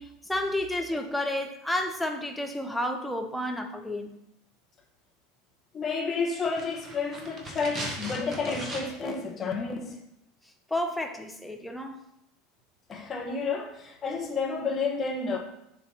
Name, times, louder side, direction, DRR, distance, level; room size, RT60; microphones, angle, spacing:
voice 1, 0.0-4.1 10.7-12.0, left 1 dB, 5° left, 0.8 m, -31 dB
voice 2, 5.7-10.0 12.9-15.4, left 4 dB, 30° left, 1.4 m, -30 dB
sound 1, 6.3-9.2 9.4-9.5, right 1 dB, 25° right, 1.5 m, -38 dB
7.4 x 3.0 x 5.7 m
figure-of-eight pair, 75°, 0 cm